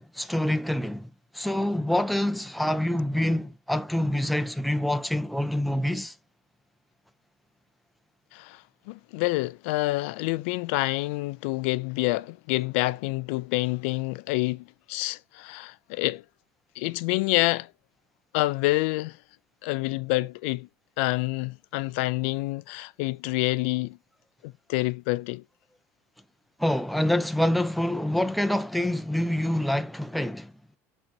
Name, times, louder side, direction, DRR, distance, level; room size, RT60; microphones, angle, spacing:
voice 1, 0.0-6.1 26.6-30.5, left 1 dB, ahead, 0.5 m, -26 dB
voice 2, 8.3-16.2 16.8-17.7 18.3-19.2 19.6-20.7 21.0-24.0 24.4-25.4, left 21 dB, 80° left, 0.4 m, -27 dB
6.5 x 6.1 x 4.3 m
cardioid pair, 150°, 6 cm